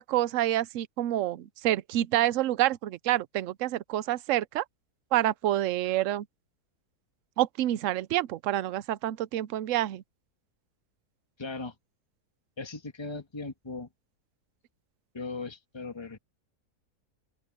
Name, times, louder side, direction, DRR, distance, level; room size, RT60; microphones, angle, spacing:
voice 1, 0.0-4.6 5.1-6.2 7.4-10.0, right 14 dB, 65° right, 0.8 m, -27 dB
voice 2, 11.4-11.7 12.6-13.9 15.1-16.2, left 3 dB, 15° left, 1.7 m, -38 dB
open air
omnidirectional pair, 1.7 m